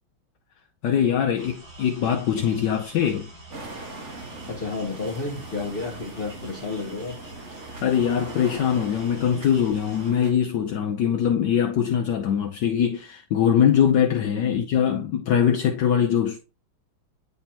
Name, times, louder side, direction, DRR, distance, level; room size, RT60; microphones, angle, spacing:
voice 1, 0.8-3.3 7.8-16.4, left 8 dB, 70° left, 1.2 m, -22 dB
sound 1, 1.4-10.1, right 1 dB, 65° right, 4.8 m, -45 dB
sound 2, 3.5-10.3, right 2 dB, 40° right, 1.5 m, -41 dB
voice 2, 4.5-7.2 14.3-14.6, left 3 dB, 40° left, 0.8 m, -31 dB
9.7 x 3.4 x 2.8 m
omnidirectional pair, 2.2 m